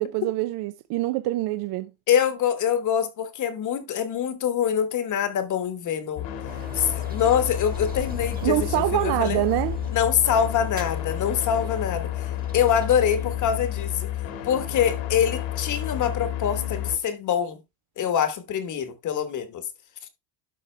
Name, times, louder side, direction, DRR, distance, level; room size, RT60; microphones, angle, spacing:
voice 1, 0.0-1.9 8.4-9.8, right 16 dB, 55° right, 0.6 m, -25 dB
voice 2, 2.1-6.3 6.7-9.4 9.9-12.3 12.5-14.1 14.4-17.6 18.0-19.6, left 8 dB, 35° left, 1.3 m, -24 dB
sound 1, 6.2-17.0, left 12 dB, 60° left, 1.8 m, -31 dB
sound 2, 6.5-13.9, right 4 dB, 15° right, 1.3 m, -42 dB
11.5 x 4.9 x 3.3 m
cardioid pair, 145°, 50 cm